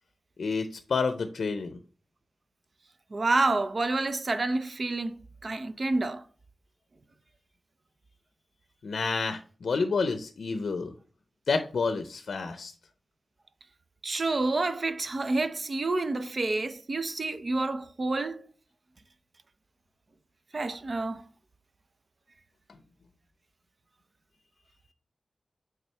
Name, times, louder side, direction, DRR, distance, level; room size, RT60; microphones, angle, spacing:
voice 1, 0.4-1.8 8.8-10.9 11.5-12.7, left 4 dB, 90° left, 0.5 m, -29 dB
voice 2, 3.1-6.2 14.0-18.5 20.5-21.2, right 2 dB, 50° right, 0.5 m, -28 dB
8.2 x 3.6 x 3.3 m
wide cardioid pair, 90°, 0 cm